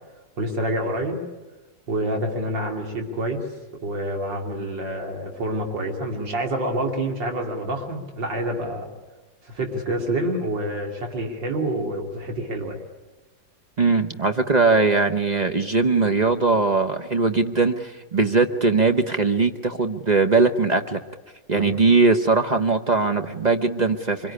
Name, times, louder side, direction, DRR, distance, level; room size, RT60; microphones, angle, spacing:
voice 1, 0.4-1.2 1.9-3.4 3.8-8.9 9.4-12.8 21.5-21.7, right 1 dB, 80° right, 2 dB, 3.4 m, -27 dB
voice 2, 13.8-21.0 21.5-24.3, right 3 dB, 35° right, 7 dB, 0.7 m, -20 dB
25.0 x 22.5 x 9.9 m, 1.2 s
omnidirectional pair, 2.0 m